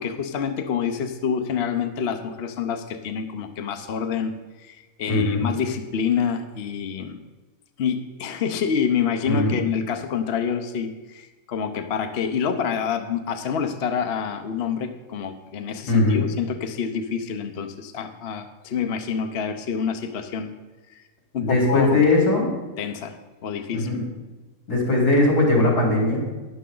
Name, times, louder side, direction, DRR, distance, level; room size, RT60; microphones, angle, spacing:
voice 1, 0.0-7.2 7.8-20.5 21.3-22.1 22.8-23.9, left 7 dB, 50° left, 7 dB, 0.9 m, -27 dB
voice 2, 5.1-5.5 9.3-9.6 15.9-16.2 21.4-22.5 23.7-24.0 24.7-26.2, left 2 dB, 80° left, -2 dB, 4.2 m, -20 dB
12.5 x 10.5 x 3.8 m, 1.2 s
omnidirectional pair, 1.6 m